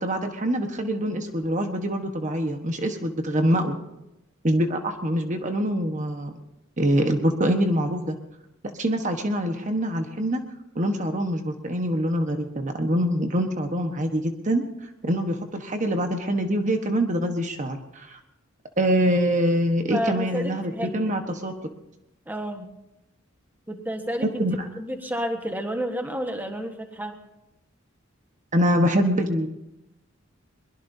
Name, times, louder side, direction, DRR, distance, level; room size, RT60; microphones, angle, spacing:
voice 1, 0.0-3.7 4.4-6.3 6.8-8.1 8.8-10.4 10.7-18.2 18.8-21.7 24.4-24.7 28.5-29.5, equal, 40° right, 5 dB, 1.3 m, -24 dB
voice 2, 19.9-21.1 22.3-22.7 23.7-24.3 24.8-27.2, equal, 10° right, 4 dB, 1.4 m, -30 dB
22.5 x 21.5 x 2.8 m, 0.91 s
head